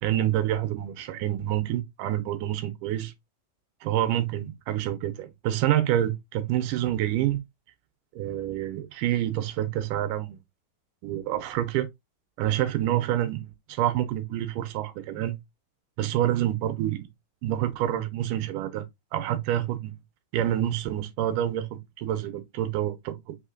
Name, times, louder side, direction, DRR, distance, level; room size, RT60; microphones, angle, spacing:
voice 1, 0.0-3.1 3.8-7.4 8.2-10.4 11.0-11.9 12.4-15.4 16.0-17.1 17.4-18.9 19.1-19.9 20.3-23.4, right 12 dB, 80° right, 2.1 m, -27 dB
5.6 x 3.6 x 2.4 m
omnidirectional pair, 4.0 m